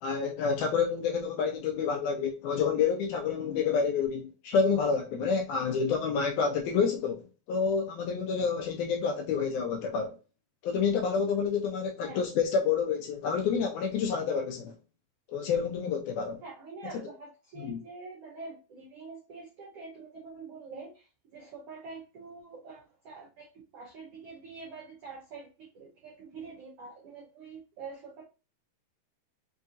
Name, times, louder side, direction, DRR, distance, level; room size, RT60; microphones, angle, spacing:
voice 1, 0.0-10.2 10.6-14.7 15.3-16.4 17.6-17.8, left 6 dB, 80° left, 1.8 m, -28 dB
voice 2, 16.4-28.2, right 4 dB, 90° right, 1.3 m, -46 dB
5.4 x 2.6 x 2.4 m
omnidirectional pair, 3.9 m